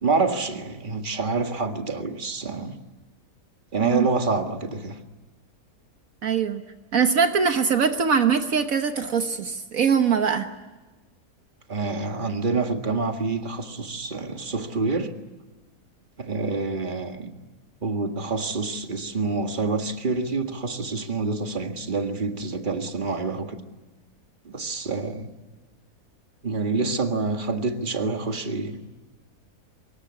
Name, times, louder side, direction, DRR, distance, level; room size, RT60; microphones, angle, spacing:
voice 1, 0.0-2.8 3.7-5.0 11.7-15.1 16.2-17.3 17.8-23.6 24.5-25.3 26.4-28.8, right 3 dB, 35° right, 2.0 m, -27 dB
voice 2, 6.2-6.6 6.9-10.5, right 6 dB, 70° right, 1.6 m, -22 dB
25.0 x 22.0 x 9.6 m
omnidirectional pair, 1.6 m